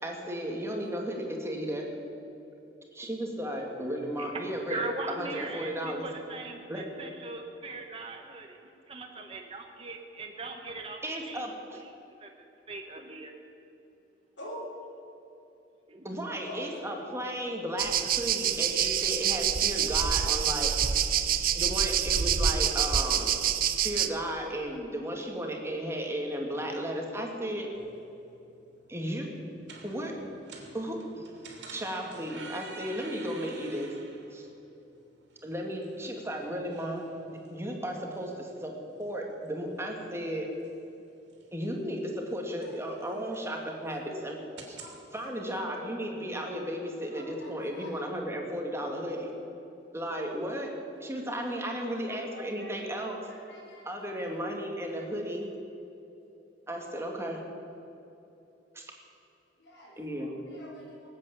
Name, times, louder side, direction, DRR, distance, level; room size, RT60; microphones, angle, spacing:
voice 1, 0.0-1.8 2.9-6.1 6.7-6.8 11.0-11.8 16.0-20.9 21.5-23.3 23.8-27.7 28.9-29.3 29.8-30.1 30.7-31.3 31.7-33.9 34.3-34.5 35.4-38.7 39.0-40.5 41.5-44.4 44.7-44.8 45.1-49.3 49.9-50.7 51.0-53.2 53.8-55.5 56.7-57.4 58.7-58.9 60.0-60.3, equal, 15° right, 1 dB, 2.2 m, -34 dB
voice 2, 4.7-8.6 8.9-11.0 11.3-11.4 12.2-12.3 12.7-13.3 15.9-16.1, right 3 dB, 30° right, 2 dB, 1.1 m, -39 dB
voice 3, 16.5-17.1 44.8-45.0 47.1-47.9 52.1-52.7 53.5-54.0 59.6-59.9 60.5-61.1, equal, 80° left, -6 dB, 4.6 m, -46 dB
sound 1, 17.8-24.1, right 8 dB, 55° right, 0.7 m, -26 dB
sound 2, 27.7-45.0, right 3 dB, 80° right, 2.8 m, -51 dB
19.5 x 8.6 x 8.4 m, 2.9 s
head